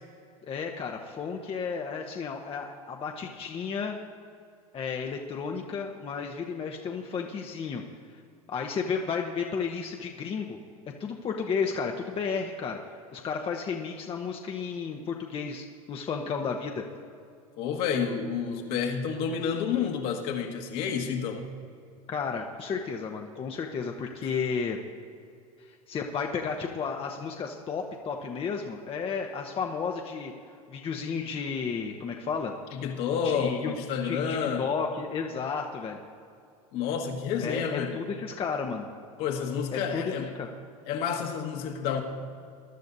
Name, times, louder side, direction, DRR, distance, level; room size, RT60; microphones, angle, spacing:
voice 1, 0.4-3.9 4.7-7.8 8.5-10.6 11.0-12.8 13.1-16.8 22.1-24.8 25.6-30.3 30.7-32.5 33.2-33.7 34.0-36.0 37.4-38.9 39.7-40.5, left 5 dB, 30° left, 2 dB, 0.9 m, -33 dB
voice 2, 17.6-21.5 32.7-34.7 36.7-38.0 39.2-40.4 40.9-42.0, left 7 dB, 55° left, 2 dB, 1.6 m, -29 dB
21.5 x 11.5 x 2.7 m, 2.4 s
hypercardioid pair, 85°, 19 cm